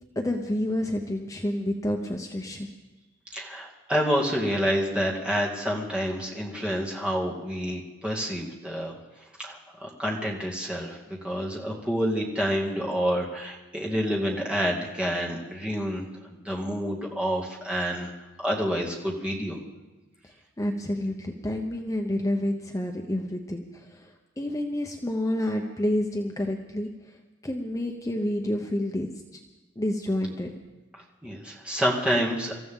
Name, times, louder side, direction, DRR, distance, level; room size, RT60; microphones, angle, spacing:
voice 1, 0.2-2.7 20.2-27.2 27.4-29.4 29.8-30.5, left 1 dB, 15° left, 2 dB, 0.9 m, -29 dB
voice 2, 3.3-8.9 9.4-18.1 18.4-19.6 31.2-32.6, equal, 5° right, -3 dB, 2.3 m, -28 dB
26.0 x 14.5 x 3.8 m, 1.2 s
head